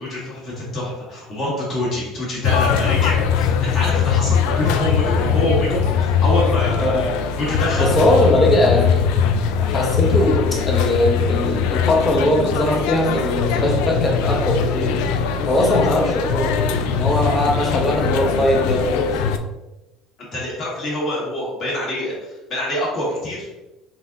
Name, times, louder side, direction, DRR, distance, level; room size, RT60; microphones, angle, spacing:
voice 1, 0.0-8.2 20.3-23.5, left 1 dB, 40° left, -5 dB, 1.5 m, -26 dB
sound 1, 2.4-19.4, left 6 dB, 80° left, 0.3 m, -21 dB
voice 2, 7.8-9.1 9.6-15.1 15.4-19.1, left 1 dB, 20° left, 1 dB, 0.7 m, -20 dB
3.9 x 2.4 x 3.8 m, 1.0 s
cardioid pair, 160°, 0 cm